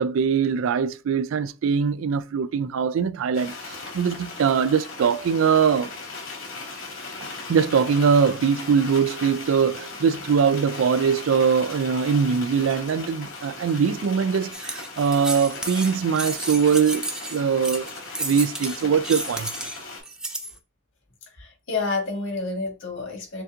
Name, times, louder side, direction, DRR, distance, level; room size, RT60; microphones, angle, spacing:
voice 1, 0.0-5.9 7.5-17.1 17.3-17.9 18.2-19.5, right 6 dB, 85° right, 0.3 m, -22 dB
sound 1, 3.3-20.0, left 3 dB, 90° left, 2.6 m, -38 dB
sound 2, 14.5-20.5, right 1 dB, 5° right, 0.3 m, -33 dB
voice 2, 21.4-23.4, left 3 dB, 70° left, 1.6 m, -29 dB
6.8 x 2.6 x 2.4 m
head